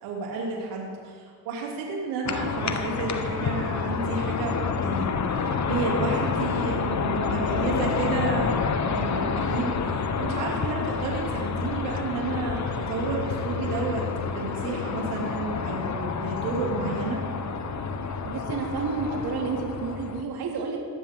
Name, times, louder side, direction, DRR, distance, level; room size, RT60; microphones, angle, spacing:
voice 1, 0.0-17.2, right 3 dB, 85° right, -2 dB, 2.8 m, -31 dB
sound 1, 2.2-20.2, left 5 dB, 35° left, 1.1 m, -28 dB
voice 2, 18.2-20.8, right 4 dB, 50° right, -1 dB, 2.5 m, -30 dB
20.0 x 9.8 x 3.7 m, 2.1 s
supercardioid pair, 80°, 49 cm